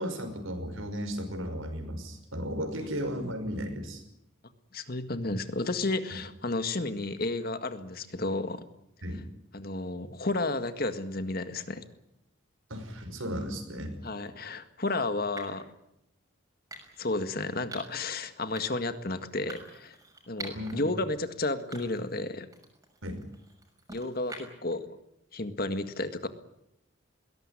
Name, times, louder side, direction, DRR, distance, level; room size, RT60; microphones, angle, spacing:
voice 1, 0.0-4.0 9.0-9.2 12.7-13.9 20.5-20.8 23.0-23.2, equal, 80° right, 7 dB, 5.8 m, -35 dB
voice 2, 4.7-8.7 9.5-11.8 14.0-15.7 17.0-20.0 20.3-22.5 23.9-24.9 25.3-26.3, left 2 dB, 45° left, 9 dB, 1.8 m, -32 dB
sound 1, 14.1-14.3 15.4-15.7 16.7-17.1 17.7-18.0 18.5-18.9 19.5-20.8 21.2-21.3 21.7-22.2 22.5-24.7, right 2 dB, 15° right, 6.0 m, -45 dB
21.5 x 18.0 x 9.9 m, 0.81 s
head